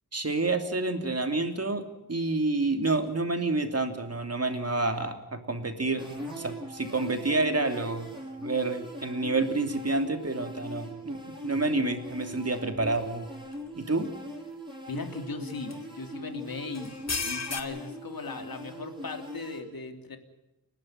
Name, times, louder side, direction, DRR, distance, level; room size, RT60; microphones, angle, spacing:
voice 1, 0.1-6.1 6.4-8.1 8.4-13.3 13.8-14.1, right 2 dB, 40° right, 6 dB, 3.0 m, -28 dB
sound 1, 6.0-19.6, equal, 10° right, 7.3 m, -41 dB
sound 2, 12.9-13.0 13.5-13.6 15.5-15.7 16.7-17.6, left 4 dB, 45° left, 2.5 m, -32 dB
voice 2, 14.9-20.2, left 3 dB, 65° left, 5 dB, 3.2 m, -38 dB
30.0 x 12.0 x 9.4 m, 0.98 s
wide cardioid pair, 110°, 38 cm